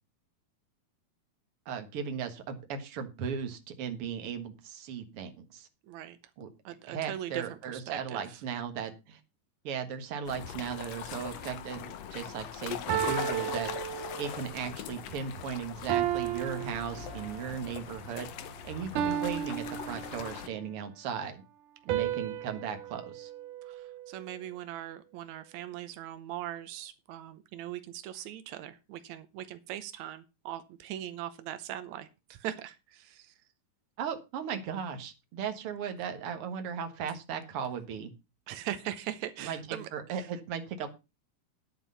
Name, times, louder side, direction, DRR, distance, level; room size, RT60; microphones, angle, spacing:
voice 1, 1.7-5.7 6.4-6.5 6.9-9.2 9.6-13.7 14.2-18.3 18.6-21.4 21.9-23.3 34.0-38.1 39.4-40.9, right 7 dB, 50° right, 6 dB, 1.8 m, -37 dB
voice 2, 5.9-6.2 6.6-8.4 21.8-22.1 23.6-33.3 38.5-40.3, right 12 dB, 90° right, 12 dB, 1.6 m, -40 dB
sound 1, 10.3-20.5, left 10 dB, 80° left, 1.5 m, -41 dB
sound 2, 11.4-11.8 12.9-14.5 15.9-17.5 19.0-20.6 21.9-24.3, right 11 dB, 70° right, 2.1 m, -34 dB
sound 3, 15.8-20.3, left 2 dB, 45° left, 0.9 m, -52 dB
10.0 x 8.5 x 5.5 m, 0.27 s
omnidirectional pair, 4.4 m